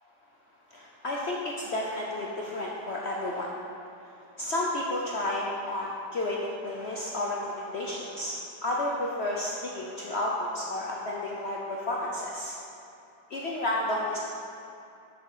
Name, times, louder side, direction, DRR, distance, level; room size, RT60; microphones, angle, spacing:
voice 1, 0.7-3.6 4.4-8.4 8.6-12.6 13.3-14.2, left 1 dB, 65° left, -3 dB, 0.6 m, -31 dB
7.2 x 6.4 x 5.5 m, 2.6 s
omnidirectional pair, 2.0 m